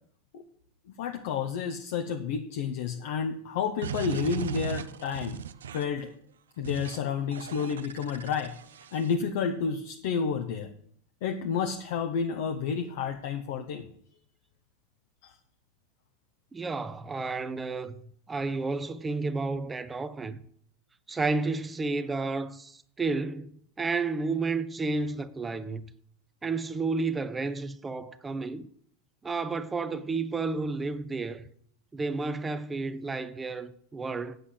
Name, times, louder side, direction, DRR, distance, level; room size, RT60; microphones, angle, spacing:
voice 1, 0.9-5.4 5.7-6.1 6.6-8.6 8.9-10.7 11.2-13.9 15.2-15.3, left 6 dB, 65° left, 0.9 m, -30 dB
sound 1, 3.8-6.0 6.6-7.0 7.3-9.2, right 9 dB, 80° right, 0.5 m, -37 dB
voice 2, 16.5-17.9 18.3-20.4 21.1-25.8 26.4-28.7 29.2-31.4 31.9-34.4, right 3 dB, 15° right, 0.8 m, -31 dB
8.3 x 7.9 x 7.9 m
hypercardioid pair, 95°, 0 cm